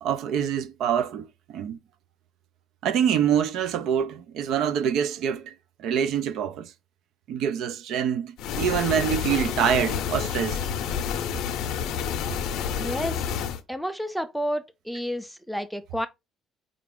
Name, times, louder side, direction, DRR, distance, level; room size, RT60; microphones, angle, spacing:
voice 1, 0.0-1.8 2.8-5.5 5.8-6.7 7.3-10.6, right 8 dB, 65° right, 0.4 m, -25 dB
sound 1, 8.4-13.6, left 8 dB, 65° left, 0.6 m, -29 dB
voice 2, 12.8-13.2 13.7-16.1, equal, ahead, 0.4 m, -30 dB
4.9 x 2.4 x 3.5 m
cardioid pair, 175°, 0 cm